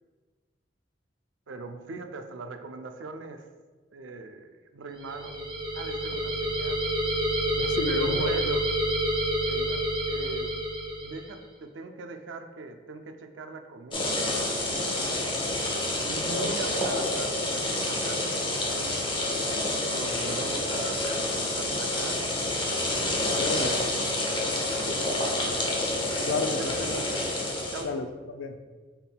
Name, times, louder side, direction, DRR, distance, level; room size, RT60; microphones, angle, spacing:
voice 1, 1.5-3.5 3.9-5.5 5.7-6.8 7.9-8.7 9.5-10.6 11.0-15.3 16.0-22.2 23.1-23.4 24.6-25.7 26.6-27.3 27.7-27.9, right 3 dB, 85° right, 6 dB, 0.4 m, -40 dB
sound 1, 5.0-11.4, right 1 dB, 25° right, 0.6 m, -28 dB
voice 2, 7.6-8.3 16.4-16.5 23.4-23.7 26.2-26.7 27.8-28.6, left 4 dB, 85° left, 7 dB, 0.4 m, -31 dB
sound 2, 13.9-27.8, left 1 dB, 25° left, 0.7 m, -28 dB
5.6 x 3.6 x 2.2 m, 1.3 s
head